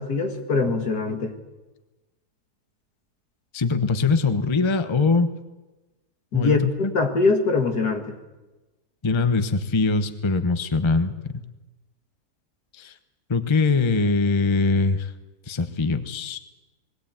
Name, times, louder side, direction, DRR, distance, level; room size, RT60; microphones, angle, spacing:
voice 1, 0.0-1.3 6.3-6.6 6.9-8.2, left 3 dB, 75° left, 4 dB, 2.6 m, -22 dB
voice 2, 3.5-5.3 6.3-6.9 9.0-11.3 12.8-12.9 13.3-15.1 15.5-16.4, left 4 dB, 20° left, 9 dB, 0.9 m, -22 dB
21.0 x 17.5 x 8.8 m, 1.1 s
omnidirectional pair, 1.7 m